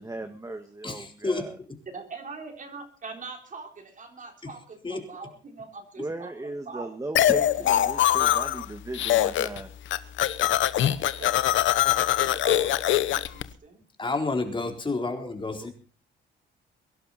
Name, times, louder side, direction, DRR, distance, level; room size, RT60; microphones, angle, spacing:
voice 1, 0.0-1.5 6.0-9.7, right 2 dB, 15° right, 7 dB, 1.8 m, -36 dB
voice 2, 0.8-1.5 4.8-5.0 14.0-15.7, left 3 dB, 25° left, 3 dB, 3.9 m, -30 dB
voice 3, 1.9-6.9 10.8-11.5 12.1-13.8, right 4 dB, 40° right, 4 dB, 4.0 m, -42 dB
sound 1, 7.2-8.7 8.9-9.6 9.9-13.4, left 12 dB, 75° left, 1.0 m, -23 dB
23.0 x 11.5 x 4.2 m, 0.36 s
cardioid pair, 90°, 20 cm